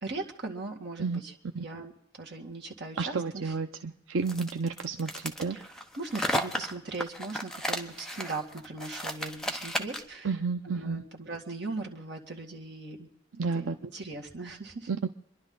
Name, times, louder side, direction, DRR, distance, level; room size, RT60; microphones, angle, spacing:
voice 1, 0.0-3.5 5.5-5.6 6.0-10.3 10.6-13.1 13.4-14.9, right 3 dB, 55° right, 0 dB, 2.0 m, -39 dB
voice 2, 3.0-5.6 10.2-11.0 13.4-13.8 14.9-15.1, right 4 dB, 85° right, 6 dB, 0.6 m, -31 dB
sound 1, 4.2-10.2, equal, 5° left, 1.0 m, -34 dB
27.5 x 11.5 x 3.9 m, 0.84 s
head